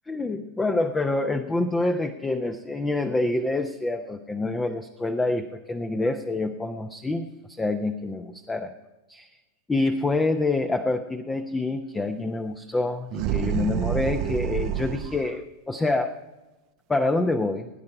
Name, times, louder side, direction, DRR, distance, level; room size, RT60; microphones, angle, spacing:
voice 1, 0.1-8.7 9.1-9.3 9.7-16.2 16.9-17.7, left 2 dB, 10° left, 8 dB, 0.7 m, -27 dB
sound 1, 13.1-15.3, right 10 dB, 40° right, 0.6 m, -28 dB
17.5 x 9.6 x 4.7 m, 1.1 s
figure-of-eight pair, 90°, 0 cm